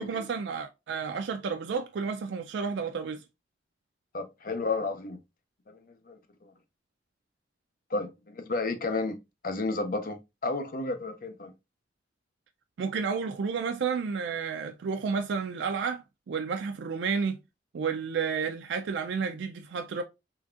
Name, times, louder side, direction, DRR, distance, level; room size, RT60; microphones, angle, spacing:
voice 1, 0.0-3.2 12.8-16.0 16.3-17.4 17.7-20.0, right 5 dB, 85° right, 0.4 m, -31 dB
voice 2, 4.1-5.2 5.7-6.5 7.9-9.2 9.4-11.5, left 3 dB, 50° left, 0.6 m, -32 dB
3.9 x 3.4 x 2.4 m
head